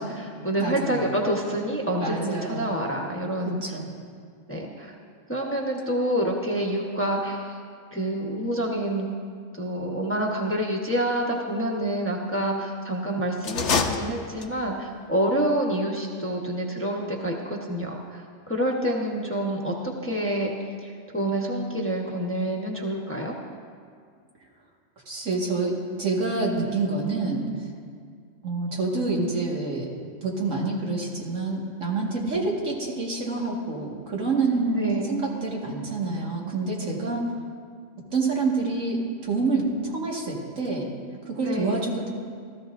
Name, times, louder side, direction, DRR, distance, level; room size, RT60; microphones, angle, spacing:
voice 1, 0.0-3.6 4.5-4.9 5.3-7.6 7.9-9.1 9.5-20.5 20.8-23.4 34.7-35.1 41.4-41.8, right 1 dB, 10° left, -2 dB, 1.0 m, -27 dB
voice 2, 0.6-1.1 2.0-2.7 3.5-3.9 25.1-27.4 28.4-29.9 30.2-37.2 38.0-40.9 41.3-42.1, right 3 dB, 80° right, -2 dB, 2.2 m, -27 dB
sound 1, 13.4-14.8, left 5 dB, 65° left, 1.1 m, -26 dB
17.0 x 13.5 x 2.6 m, 2.1 s
omnidirectional pair, 1.3 m